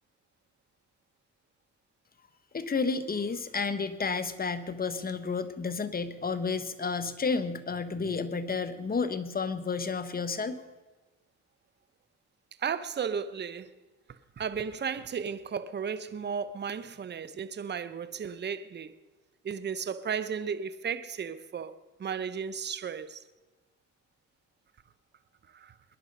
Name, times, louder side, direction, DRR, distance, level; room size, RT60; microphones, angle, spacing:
voice 1, 2.5-10.6, left 4 dB, 30° left, 1.2 m, -31 dB
voice 2, 12.6-13.7 14.1-18.9 19.4-21.7 22.0-23.2 25.5-25.7, right 7 dB, 35° right, 0.8 m, -34 dB
21.0 x 10.5 x 5.4 m
cardioid pair, 90°, 30 cm